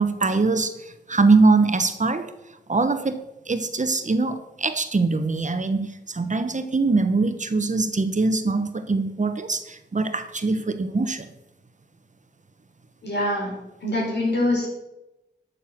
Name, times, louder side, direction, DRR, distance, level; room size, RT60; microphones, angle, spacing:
voice 1, 0.0-2.3 2.7-3.2 3.5-11.3, right 3 dB, 45° right, 9 dB, 1.1 m, -22 dB
voice 2, 13.0-14.7, left 1 dB, 70° left, -2 dB, 5.1 m, -25 dB
12.0 x 6.8 x 6.0 m, 0.93 s
cardioid pair, 60°, 18 cm